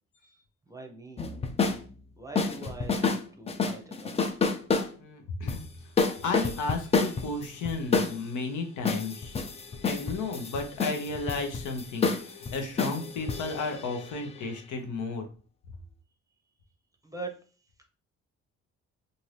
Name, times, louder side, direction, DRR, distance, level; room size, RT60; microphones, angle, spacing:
voice 1, 0.7-1.3 2.2-4.3 17.0-17.3, right 3 dB, 10° right, 3 dB, 0.6 m, -42 dB
sound 1, 1.2-1.8 2.4-3.2 3.5-4.9 5.5-5.6 6.0-8.2 8.8-14.5, left 4 dB, 20° left, 0.4 m, -29 dB
voice 2, 4.9-5.7 6.2-9.4 9.8-15.3, left 3 dB, 80° left, 4 dB, 0.8 m, -33 dB
2.7 x 2.6 x 3.2 m, 0.39 s
cardioid pair, 90°, 30 cm